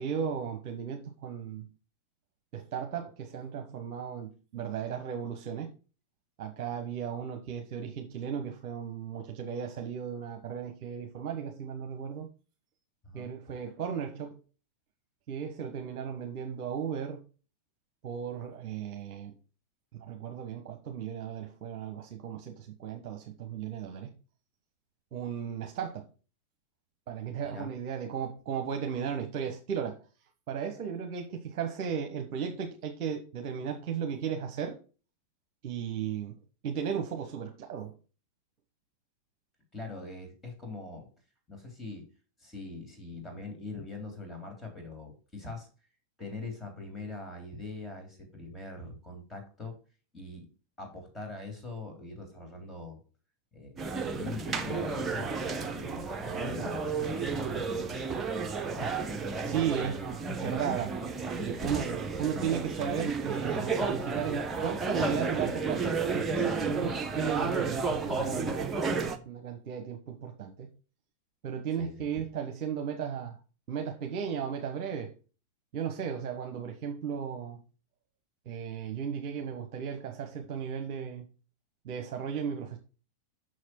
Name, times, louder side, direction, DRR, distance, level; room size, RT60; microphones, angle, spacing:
voice 1, 0.0-1.7 2.5-5.7 6.4-12.3 13.1-14.4 15.3-17.2 18.0-19.3 20.1-24.1 25.1-26.0 27.1-30.0 30.5-34.8 35.6-36.3 36.6-37.9 59.4-60.9 61.4-70.7 71.4-73.4 73.7-75.1 75.7-77.6 78.5-81.2 81.8-82.8, right 7 dB, 45° right, 1.1 m, -35 dB
voice 2, 39.7-41.1 41.5-42.1 42.4-45.7 46.2-49.8 50.1-50.5 50.8-53.0 53.5-53.8 54.1-57.8 58.7-58.9 71.8-72.2, left 3 dB, 15° left, 3.3 m, -42 dB
sound 1, 53.8-69.2, right 4 dB, 20° right, 0.9 m, -32 dB
6.5 x 6.4 x 4.4 m
figure-of-eight pair, 90°, 0 cm